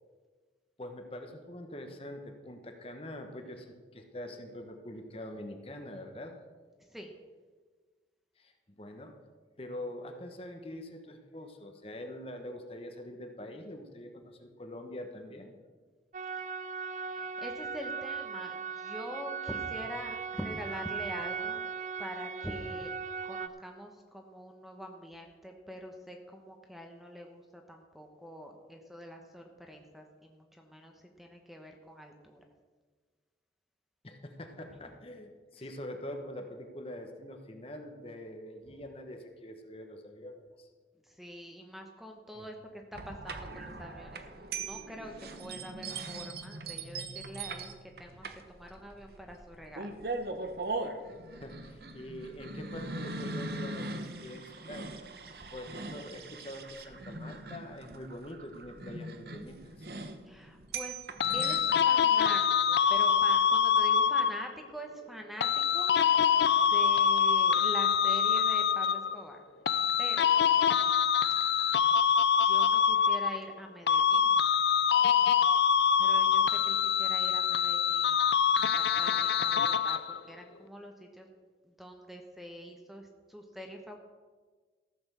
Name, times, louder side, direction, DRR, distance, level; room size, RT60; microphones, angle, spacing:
voice 1, 0.8-6.4 8.4-9.2 9.6-15.6 34.0-40.7 42.3-42.5 49.1-49.2 51.4-54.9 55.5-59.9, left 1 dB, 35° left, 5 dB, 1.1 m, -44 dB
sound 1, 16.1-23.5, right 5 dB, 45° right, 0.5 m, -38 dB
voice 2, 16.9-21.6 22.0-22.9 23.3-32.4 41.1-50.0 60.2-61.0 61.3-62.4 62.7-66.0 66.6-69.4 70.0-70.3 72.4-74.5 76.0-81.3 81.6-84.0, equal, ahead, 3 dB, 1.0 m, -45 dB
sound 2, 42.9-61.8, right 3 dB, 60° right, 1.0 m, -41 dB
sound 3, 61.2-64.6 65.4-69.2 69.7-73.6 73.9-80.2, left 7 dB, 75° left, 0.5 m, -25 dB
14.5 x 7.0 x 6.8 m, 1.4 s
head